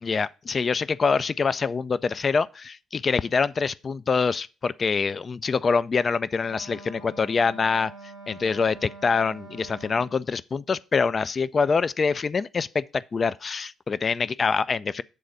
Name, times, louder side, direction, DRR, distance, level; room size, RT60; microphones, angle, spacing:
voice 1, 0.0-7.9 8.3-15.0, left 5 dB, 40° left, 0.3 m, -25 dB
Wind instrument woodwind instrument, 6.4-10.3, right 3 dB, 75° left, 2.8 m, -45 dB
7.7 x 3.9 x 6.7 m
figure-of-eight pair, 45°, 0 cm